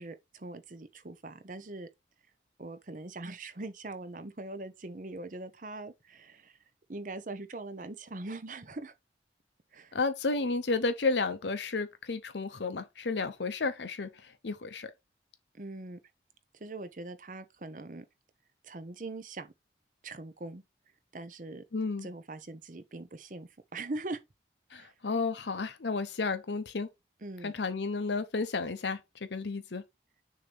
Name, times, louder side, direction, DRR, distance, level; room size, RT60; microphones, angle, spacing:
voice 1, 0.0-1.9 2.6-6.6 6.9-8.9 9.7-9.9 15.5-16.0 16.6-18.0 18.6-19.5 20.0-20.6 21.1-21.6 22.0-24.2 24.7-24.9 27.2-27.5, right 2 dB, 45° right, 0.8 m, -42 dB
voice 2, 9.9-14.1 14.4-14.9 21.7-22.1 24.7-26.9 27.4-29.0 29.3-29.8, left 3 dB, 80° left, 0.8 m, -32 dB
6.5 x 2.9 x 5.3 m
head